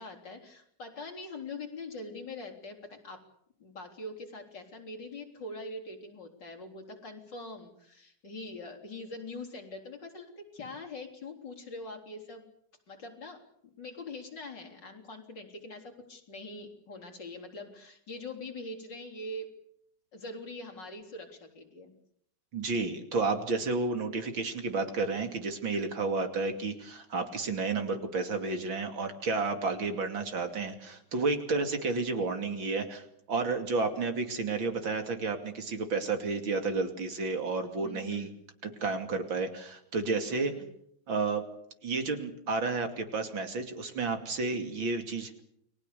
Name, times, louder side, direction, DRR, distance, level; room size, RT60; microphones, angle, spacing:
voice 1, 0.0-3.2 3.6-12.5 12.9-13.4 13.8-19.5 20.1-21.9 37.8-38.3 40.3-40.7, left 2 dB, 60° left, 2 dB, 4.7 m, -43 dB
voice 2, 22.5-38.3 38.6-40.5 41.1-41.5 41.8-45.4, right 3 dB, 70° right, 6 dB, 3.5 m, -31 dB
29.5 x 21.5 x 6.9 m, 0.70 s
omnidirectional pair, 2.2 m